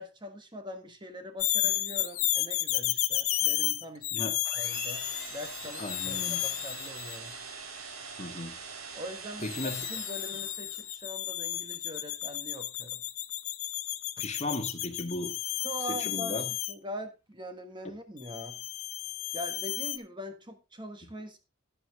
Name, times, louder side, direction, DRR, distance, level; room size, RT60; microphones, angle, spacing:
voice 1, 0.0-7.4 8.9-13.0 14.2-14.3 15.6-18.6 19.3-21.4, equal, 20° right, 7 dB, 1.4 m, -42 dB
sound 1, 1.4-7.3 9.4-16.7 18.2-20.0, left 15 dB, 80° left, 0.9 m, -32 dB
sound 2, 4.4-10.9, right 5 dB, 80° right, 2.1 m, -43 dB
voice 2, 5.8-6.4 8.2-8.6 9.4-9.8 14.2-15.3 15.9-16.5, left 2 dB, 30° left, 5 dB, 1.9 m, -35 dB
11.0 x 10.0 x 3.6 m, 0.26 s
head